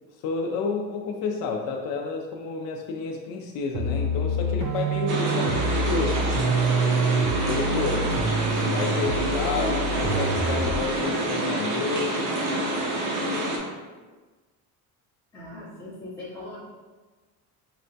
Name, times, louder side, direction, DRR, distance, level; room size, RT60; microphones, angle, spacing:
voice 1, 0.2-6.2 7.4-8.0 8.5-9.8 10.2-12.4, left 4 dB, 70° left, 1 dB, 0.5 m, -30 dB
sound 1, 3.7-10.9, right 2 dB, 65° right, 0.5 m, -26 dB
sound 2, 5.1-13.6, right 1 dB, 85° right, 0.8 m, -27 dB
voice 2, 9.6-9.9 15.3-16.6, equal, 5° left, -11 dB, 0.6 m, -37 dB
4.7 x 2.2 x 2.6 m, 1.3 s
cardioid pair, 170°, 37 cm